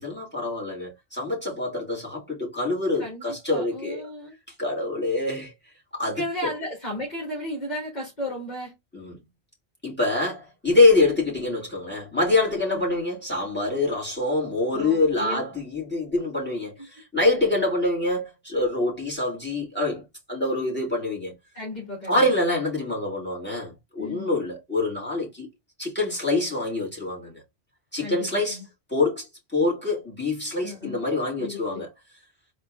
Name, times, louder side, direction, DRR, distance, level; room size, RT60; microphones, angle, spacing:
voice 1, 0.0-4.0 4.6-5.5 5.9-6.2 8.9-9.1 9.8-21.3 22.1-25.5 25.8-27.4 27.9-28.6 28.9-29.3 29.5-31.9, left 2 dB, 10° left, 2.8 m, -25 dB
voice 2, 3.0-4.3 6.1-8.7 12.7-12.8 14.7-15.4 17.4-17.6 20.4-20.7 21.5-22.3 24.0-24.3 28.0-28.7 30.6-31.0 31.4-31.8, left 1 dB, 40° left, 2.1 m, -34 dB
4.3 x 3.2 x 3.7 m
omnidirectional pair, 1.2 m